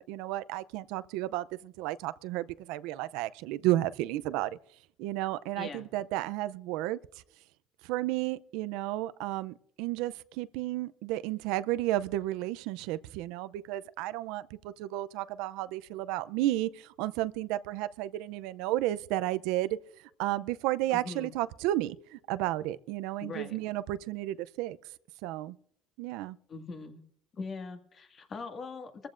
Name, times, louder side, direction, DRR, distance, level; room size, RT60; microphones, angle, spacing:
voice 1, 0.0-4.6 5.0-7.0 7.8-24.8 25.2-25.6 26.0-26.4, right 15 dB, 80° right, 0.5 m, -32 dB
voice 2, 5.6-5.9 20.9-21.3 23.2-23.6 26.5-27.0 27.3-29.1, left 4 dB, 40° left, 1.9 m, -41 dB
24.0 x 14.5 x 2.5 m
supercardioid pair, 105°, 0 cm